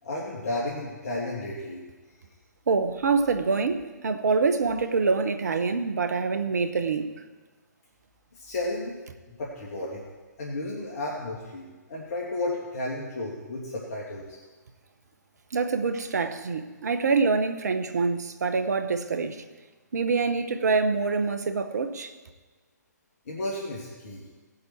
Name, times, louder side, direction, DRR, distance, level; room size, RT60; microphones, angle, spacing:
voice 1, 0.0-1.8 8.3-8.9 9.3-10.0 10.4-14.4 23.3-24.2, left 2 dB, 55° left, -4 dB, 2.7 m, -33 dB
voice 2, 2.7-7.1 15.5-19.4 19.9-22.1, right 4 dB, 65° right, 9 dB, 1.2 m, -25 dB
18.5 x 7.9 x 4.6 m, 1.3 s
figure-of-eight pair, 130°, 10 cm